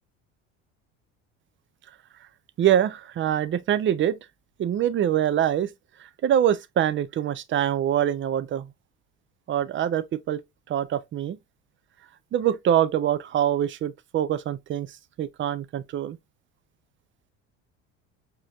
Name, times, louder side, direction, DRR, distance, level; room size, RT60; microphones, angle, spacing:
voice 1, 2.6-4.2 4.6-5.7 6.2-8.7 9.5-10.4 10.7-11.4 12.3-14.9 15.2-16.2, right 10 dB, 30° right, 0.5 m, -24 dB
4.8 x 2.9 x 2.3 m
hypercardioid pair, 70°, 38 cm